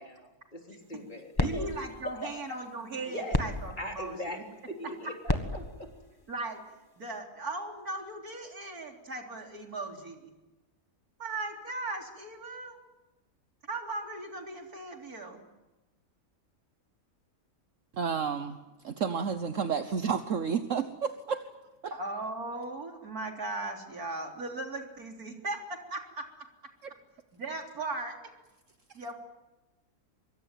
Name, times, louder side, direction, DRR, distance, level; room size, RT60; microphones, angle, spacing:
voice 1, 0.0-1.7 2.2-2.6 3.0-3.5 3.8-5.6, equal, 30° left, 2 dB, 3.8 m, -40 dB
sound 1, 0.8-7.2, left 2 dB, 15° left, 1.6 m, -36 dB
voice 2, 1.4-4.4 5.0-5.1 6.3-6.6 7.0-10.3 11.2-12.8 13.7-15.5 21.9-26.3 27.3-28.2 28.9-29.1, right 2 dB, 80° right, 2 dB, 4.1 m, -38 dB
voice 3, 17.9-18.6 18.8-21.4 21.8-21.9 26.8-26.9, right 6 dB, 60° right, 9 dB, 1.4 m, -31 dB
24.5 x 23.5 x 9.2 m, 1.1 s
omnidirectional pair, 1.6 m